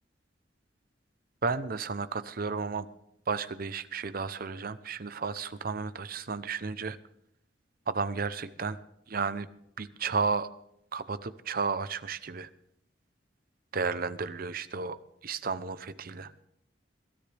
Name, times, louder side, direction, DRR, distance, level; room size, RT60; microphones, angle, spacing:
voice 1, 1.4-2.9 3.3-7.0 7.9-8.8 9.1-9.5 9.8-10.5 10.9-12.5 13.7-15.0 15.2-16.3, right 4 dB, 55° right, 14 dB, 0.7 m, -33 dB
21.5 x 13.0 x 3.5 m, 0.75 s
head